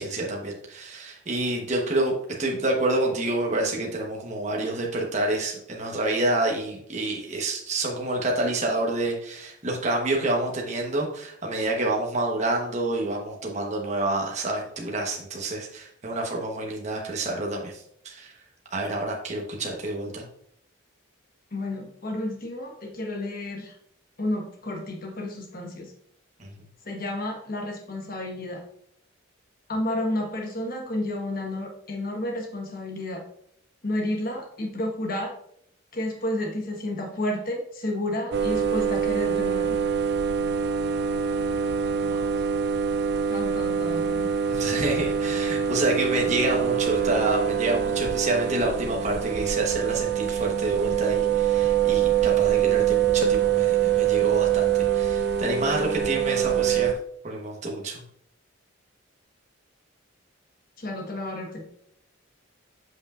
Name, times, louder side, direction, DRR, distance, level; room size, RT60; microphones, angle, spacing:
voice 1, 0.0-18.3 18.7-20.2 26.4-26.6 42.0-42.3 44.5-57.0 57.2-58.0, right 2 dB, 35° right, 0 dB, 1.1 m, -28 dB
voice 2, 21.5-23.8 24.2-25.9 26.8-28.6 29.7-33.2 33.8-35.3 35.9-39.7 43.3-44.3 60.8-61.6, left 1 dB, 45° left, 1 dB, 1.3 m, -31 dB
sound 1, 38.3-56.9, right 8 dB, 55° right, 0.4 m, -24 dB
7.7 x 5.6 x 2.4 m, 0.68 s
head